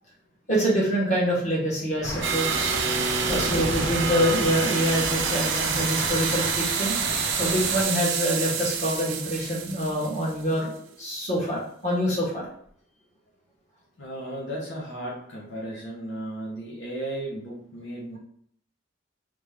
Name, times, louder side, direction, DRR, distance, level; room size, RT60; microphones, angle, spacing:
voice 1, 0.5-2.9 3.3-6.9 7.4-12.4, equal, 35° left, -5 dB, 1.6 m, -26 dB
sound 1, 2.0-7.8, equal, 15° left, 1.3 m, -34 dB
sound 2, 2.2-10.5, right 6 dB, 70° right, 0.6 m, -27 dB
voice 2, 14.0-18.2, right 1 dB, 70° left, -5 dB, 1.0 m, -35 dB
3.3 x 3.3 x 3.6 m, 0.62 s
head